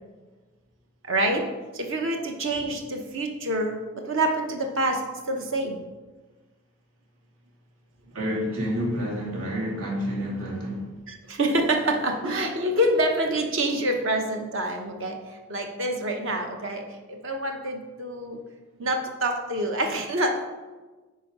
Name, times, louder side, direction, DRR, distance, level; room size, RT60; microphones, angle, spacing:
voice 1, 1.1-1.4 1.7-3.8 4.1-5.0 5.3-5.8 11.1-15.2 15.5-16.8 17.2-18.4 18.8-20.4, right 1 dB, 55° right, 1.0 m, -26 dB
voice 2, 8.1-10.8, equal, 75° right, 2.7 m, -29 dB
9.1 x 4.8 x 5.4 m
head